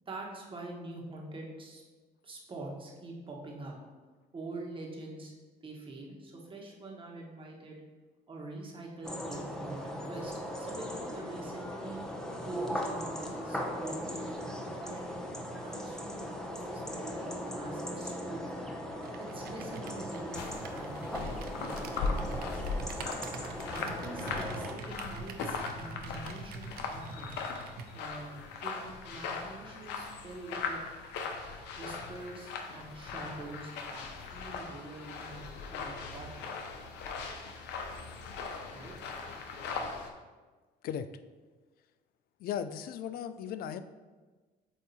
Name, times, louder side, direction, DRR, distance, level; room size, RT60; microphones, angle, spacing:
voice 1, 0.1-1.8 2.2-3.7 4.3-5.3 5.6-7.8 8.3-12.0 12.4-14.2 14.7-15.1 15.6-18.6 19.2-20.4 20.7-23.0 23.7-27.3 27.9-30.8 31.8-34.0 34.3-35.4 35.7-36.7 38.7-38.9, right 2 dB, 30° right, -1 dB, 1.3 m, -45 dB
sound 1, 9.0-24.7, equal, 5° left, 0.7 m, -39 dB
Computer keyboard, 18.9-27.9, right 6 dB, 65° right, 0.6 m, -47 dB
sound 2, 20.3-40.1, left 4 dB, 85° left, 0.7 m, -39 dB
voice 2, 42.4-43.8, left 9 dB, 60° left, 12 dB, 0.4 m, -36 dB
8.2 x 2.8 x 4.1 m, 1.3 s
cardioid pair, 110°, 17 cm